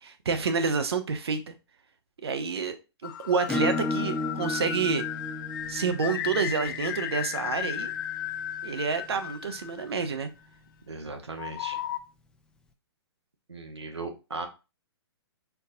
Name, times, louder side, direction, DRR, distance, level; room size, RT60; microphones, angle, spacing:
voice 1, 0.0-1.5 2.2-2.8 3.0-5.0 5.7-7.9 8.6-10.3, right 5 dB, 70° right, 8 dB, 0.9 m, -28 dB
sound 1, 3.0-10.2 11.4-12.0, left 11 dB, 50° left, 0.6 m, -35 dB
Acoustic guitar / Strum, 3.5-8.7, left 2 dB, 5° left, 0.5 m, -34 dB
voice 2, 10.9-11.8 13.5-14.5, right 3 dB, 90° right, 4 dB, 1.2 m, -37 dB
4.5 x 4.1 x 2.7 m, 0.29 s
hypercardioid pair, 125°, 14 cm